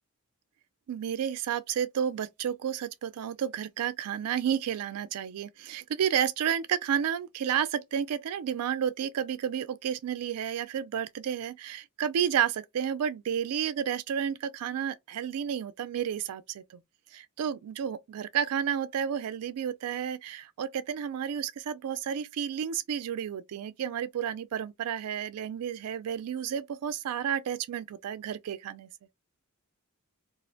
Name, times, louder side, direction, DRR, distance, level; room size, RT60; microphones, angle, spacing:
voice 1, 0.9-16.8 17.1-28.9, right 8 dB, 85° right, 0.3 m, -31 dB
2.5 x 2.1 x 2.6 m
head